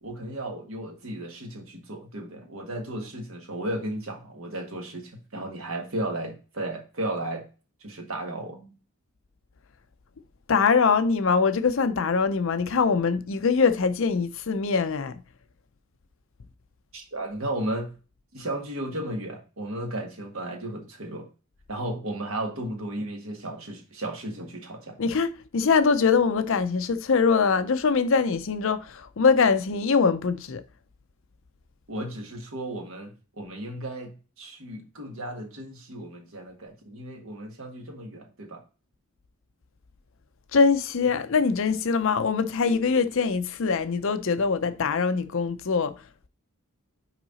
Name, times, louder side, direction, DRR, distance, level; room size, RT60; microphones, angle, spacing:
voice 1, 0.0-7.4 7.8-8.8 16.9-17.9 18.3-21.3 21.7-25.0 31.9-38.6, right 1 dB, 65° right, 1.6 m, -34 dB
voice 2, 10.5-15.1 25.0-30.6 40.5-45.9, left 5 dB, 60° left, 0.5 m, -23 dB
6.0 x 4.7 x 4.0 m
head